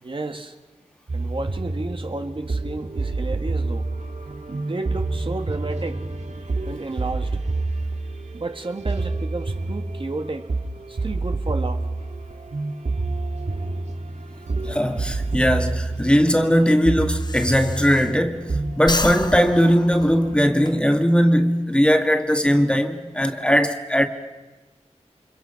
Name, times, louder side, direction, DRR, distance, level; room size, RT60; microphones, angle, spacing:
voice 1, 0.0-0.6 1.1-3.9 4.5-6.0 6.7-7.3 8.3-10.5 10.9-11.9, right 2 dB, 45° right, 1.6 m, -32 dB
sound 1, 1.1-20.8, right 3 dB, 70° right, 2.0 m, -28 dB
voice 2, 14.7-18.5 18.8-24.1, equal, 10° left, 2.0 m, -19 dB
Breathing, 15.7-18.5 18.8-20.7, left 3 dB, 35° left, 0.8 m, -31 dB
29.5 x 25.0 x 5.8 m
wide cardioid pair, 80°, 12 cm